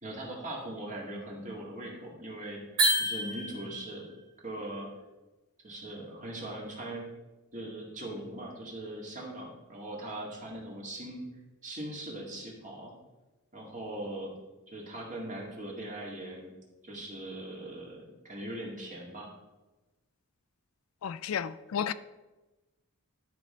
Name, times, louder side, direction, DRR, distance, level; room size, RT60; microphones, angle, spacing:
voice 1, 0.0-4.1 4.4-4.9 5.6-7.0 7.5-11.3 11.6-12.9 13.5-14.3 14.7-16.5 16.8-19.3, right 1 dB, 35° right, 2.0 m, -40 dB
sound 1, 2.8-3.9, right 1 dB, 65° right, 2.8 m, -28 dB
voice 2, 21.0-21.9, left 8 dB, 70° left, 0.3 m, -32 dB
11.5 x 5.2 x 4.3 m
head